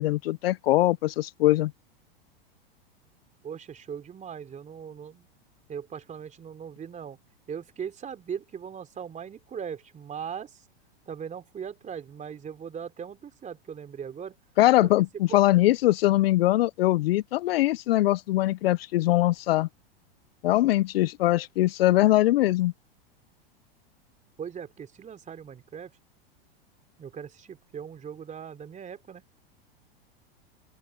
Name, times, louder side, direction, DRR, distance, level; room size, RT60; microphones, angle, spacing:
voice 1, 0.0-1.7 14.6-19.7 20.4-22.7, left 16 dB, 70° left, 0.6 m, -22 dB
voice 2, 3.4-5.3 5.7-7.2 7.5-10.6 11.1-14.4 14.8-14.9 15.3-15.4 24.4-25.9 27.0-29.2, right 7 dB, 25° right, 3.4 m, -39 dB
open air
hypercardioid pair, 105°, 30 cm